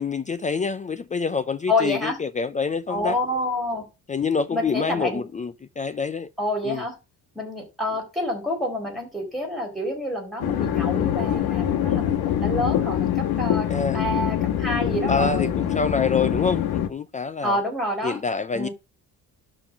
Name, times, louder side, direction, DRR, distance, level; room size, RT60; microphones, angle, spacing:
voice 1, 0.0-3.2 4.1-6.3 6.6-6.8 13.7-14.0 15.1-17.6 18.0-18.7, left 5 dB, 20° left, 0.4 m, -26 dB
voice 2, 1.7-2.2 2.9-3.8 4.5-5.2 6.4-7.0 7.3-15.5 17.4-18.2 18.5-18.7, left 1 dB, ahead, 4.3 m, -28 dB
sound 1, 10.4-16.9, left 10 dB, 85° left, 1.6 m, -24 dB
12.0 x 4.0 x 7.4 m
cardioid pair, 170°, 36 cm